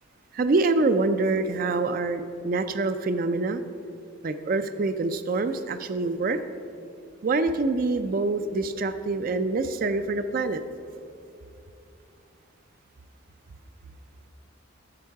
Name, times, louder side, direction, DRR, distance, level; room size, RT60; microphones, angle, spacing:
voice 1, 0.3-3.6 4.2-6.4 7.2-10.6, right 3 dB, 40° right, 10 dB, 0.4 m, -25 dB
11.0 x 6.9 x 4.7 m, 2.5 s
head